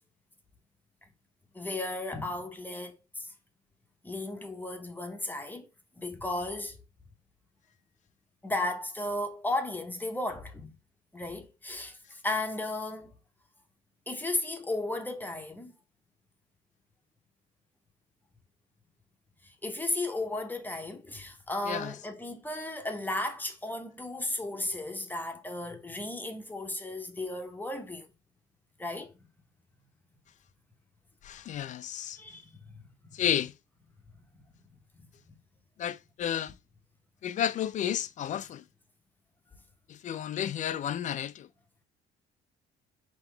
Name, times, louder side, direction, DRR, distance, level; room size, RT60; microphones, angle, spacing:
voice 1, 1.5-3.3 4.0-5.7 6.0-6.8 8.4-10.8 11.1-13.1 14.1-15.7 19.4-28.1 28.8-29.2 32.2-33.1 35.3-35.4, left 2 dB, 10° left, 0.8 m, -35 dB
voice 2, 21.6-22.0 31.2-32.2 33.1-33.5 35.8-36.6 37.2-38.6 39.9-41.5, left 10 dB, 45° left, 0.4 m, -32 dB
3.9 x 2.9 x 4.4 m
cardioid pair, 110°, 17 cm